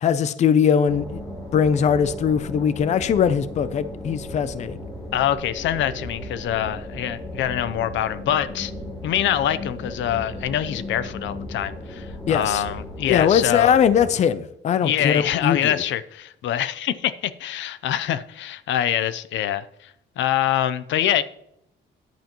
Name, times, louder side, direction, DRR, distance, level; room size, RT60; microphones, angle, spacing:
voice 1, 0.0-1.2 1.5-4.7 12.3-12.6 13.1-15.7, left 7 dB, 35° left, 14 dB, 0.5 m, -20 dB
sound 1, 0.8-14.1, left 1 dB, 20° left, 3.2 m, -36 dB
voice 2, 5.1-8.7 9.0-13.8 14.8-21.2, left 11 dB, 75° left, 14 dB, 0.7 m, -25 dB
14.0 x 10.5 x 3.0 m, 0.78 s
cardioid pair, 175°, 19 cm